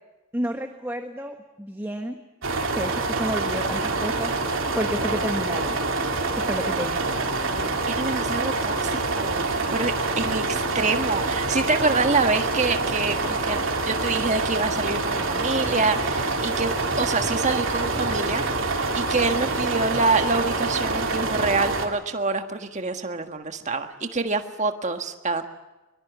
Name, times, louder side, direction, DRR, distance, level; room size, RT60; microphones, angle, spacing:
voice 1, 0.3-2.2 2.7-5.8 6.3-7.1, right 1 dB, 10° right, 4 dB, 1.3 m, -31 dB
sound 1, 2.4-21.8, right 3 dB, 60° right, 3.2 m, -26 dB
voice 2, 7.9-9.4 9.7-13.6 13.8-18.4 18.9-25.5, right 3 dB, 30° right, 6 dB, 1.6 m, -26 dB
sound 2, 14.4-21.8, right 1 dB, 10° left, 5.0 m, -41 dB
23.5 x 23.0 x 8.2 m, 1.1 s
head